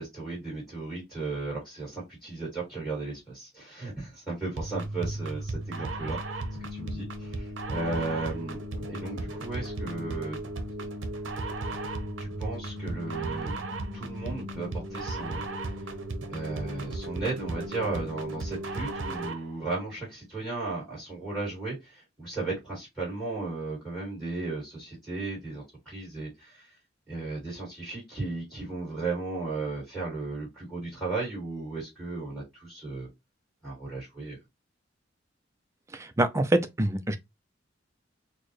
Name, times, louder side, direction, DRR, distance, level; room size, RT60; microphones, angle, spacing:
voice 1, 0.0-6.4 6.7-10.4 12.2-13.5 13.9-16.0 16.3-26.8 27.1-33.1 33.6-34.4, right 3 dB, 5° left, 2.2 m, -35 dB
sound 1, 4.6-19.5, right 1 dB, 80° right, 0.7 m, -35 dB
voice 2, 35.9-37.2, right 1 dB, 15° right, 0.4 m, -25 dB
4.3 x 2.1 x 3.1 m
head